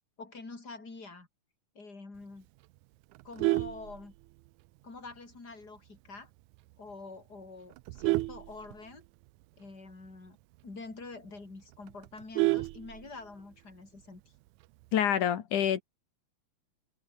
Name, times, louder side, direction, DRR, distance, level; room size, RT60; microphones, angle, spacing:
voice 1, 0.2-1.3 1.8-2.5 3.2-4.1 4.8-6.3 6.8-9.0 9.6-10.4 10.6-14.2, left 3 dB, 30° left, 5.6 m, -46 dB
Vehicle horn car horn honking, 3.1-4.6 5.1-5.3 5.6-5.7 6.2-6.3 6.5-6.9 7.5-9.3 9.7-9.8 10.0-10.1 10.6-10.7 11.0-11.1 11.4-13.4 14.6-15.0, right 19 dB, 85° right, 2.0 m, -31 dB
voice 2, 14.9-15.8, left 9 dB, 85° left, 3.4 m, -27 dB
omnidirectional pair, 3.5 m